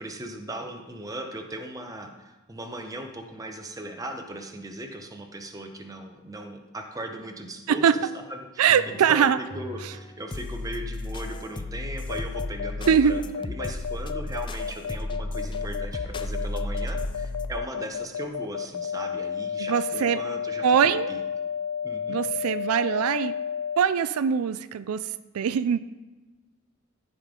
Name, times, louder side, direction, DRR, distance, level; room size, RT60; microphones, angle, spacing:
voice 1, 0.0-7.9 8.3-21.2 21.8-22.2, right 1 dB, 15° right, 4 dB, 0.8 m, -38 dB
sound 1, 7.8-8.3 8.7-17.6, left 2 dB, 20° left, 0.3 m, -34 dB
voice 2, 8.6-9.4 9.8-9.9 12.9-13.1 19.6-20.2 20.6-21.1 22.1-23.3 23.8-25.8, right 7 dB, 85° right, 14 dB, 0.4 m, -22 dB
sound 2, 12.1-23.8, left 7 dB, 90° left, 0.4 m, -31 dB
15.0 x 5.1 x 3.8 m, 1.2 s
head